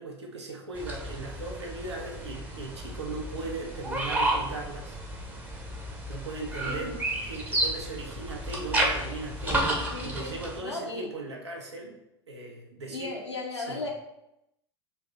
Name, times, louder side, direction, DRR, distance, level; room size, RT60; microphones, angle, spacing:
voice 1, 0.0-5.0 6.1-7.0 7.2-12.0 12.3-13.2 13.5-13.8, right 3 dB, 75° right, 0 dB, 0.8 m, -38 dB
sound 1, 0.7-10.6, right 1 dB, 10° right, 0.7 m, -32 dB
voice 2, 9.9-10.3 10.6-11.1 12.9-13.9, left 3 dB, 80° left, 0 dB, 0.7 m, -36 dB
3.3 x 2.6 x 3.4 m, 0.85 s
figure-of-eight pair, 80°, 14 cm